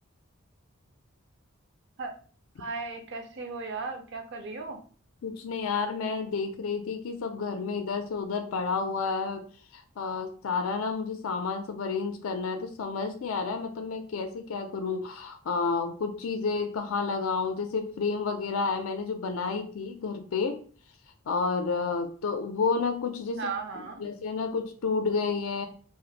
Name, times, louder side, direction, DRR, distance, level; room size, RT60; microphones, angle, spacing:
voice 1, 2.6-4.8 23.4-24.1, right 4 dB, 55° right, 4 dB, 0.5 m, -36 dB
voice 2, 5.2-9.4 9.7-20.6 21.3-25.7, left 4 dB, 75° left, 6 dB, 0.4 m, -30 dB
2.5 x 2.5 x 3.9 m, 0.42 s
head